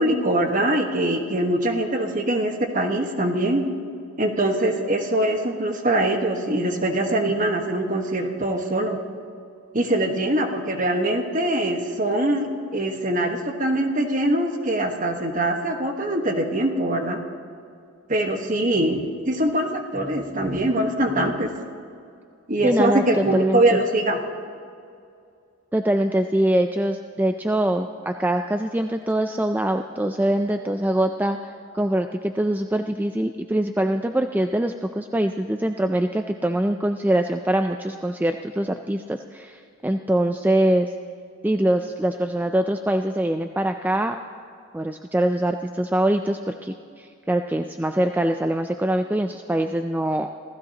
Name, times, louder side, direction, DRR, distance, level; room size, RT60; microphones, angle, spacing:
voice 1, 0.0-3.6 4.2-9.0 9.7-17.2 18.1-21.5 22.5-24.2, right 1 dB, 40° right, 4 dB, 1.3 m, -23 dB
voice 2, 22.6-23.6 25.7-31.4 31.7-40.9 41.4-44.2 44.7-50.3, right 1 dB, 10° right, 6 dB, 0.3 m, -23 dB
26.5 x 16.0 x 2.9 m, 2.4 s
head